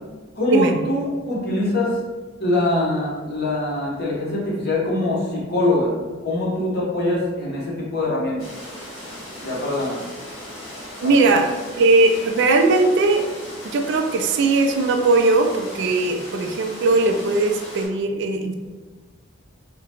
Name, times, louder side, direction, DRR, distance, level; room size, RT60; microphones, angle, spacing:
voice 1, 0.3-2.0 2.4-5.9 6.2-8.4 9.4-10.1 11.0-11.4, left 1 dB, 55° left, -5 dB, 1.0 m, -23 dB
sound 1, 8.4-17.9, left 1 dB, 80° left, 1.1 m, -37 dB
voice 2, 11.0-11.5 11.8-13.2 13.7-18.5, right 3 dB, 60° right, 5 dB, 0.3 m, -19 dB
3.7 x 2.1 x 2.9 m, 1.3 s
head